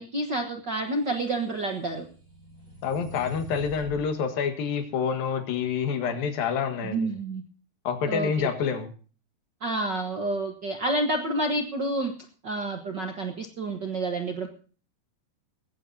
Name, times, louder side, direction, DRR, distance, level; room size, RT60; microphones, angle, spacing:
voice 1, 0.0-2.1 6.8-7.4 8.0-8.5 9.6-12.1 12.4-14.5, right 2 dB, 55° right, 4 dB, 1.2 m, -29 dB
sound 1, 1.1-4.1, equal, 25° right, 3.7 m, -44 dB
voice 2, 2.8-7.1 7.9-8.9, left 6 dB, 85° left, 8 dB, 3.5 m, -27 dB
19.0 x 16.0 x 2.8 m, 0.40 s
omnidirectional pair, 4.0 m